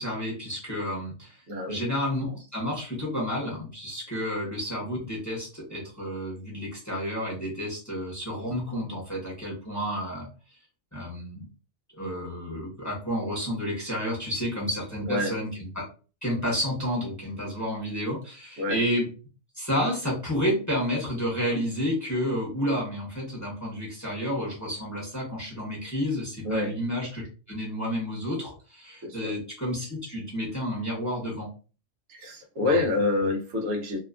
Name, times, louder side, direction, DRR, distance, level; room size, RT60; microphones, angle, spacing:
voice 1, 0.0-1.4 1.7-10.3 10.9-11.5 12.0-15.8 16.2-19.1 19.5-31.5 32.6-32.8 33.2-33.3, equal, 15° left, -4 dB, 0.8 m, -30 dB
voice 2, 1.5-1.8 15.1-15.3 18.6-18.8 26.4-26.7 29.0-29.3 32.1-34.0, left 2 dB, 90° right, 1 dB, 1.2 m, -27 dB
2.8 x 2.3 x 2.4 m, 0.36 s
omnidirectional pair, 1.3 m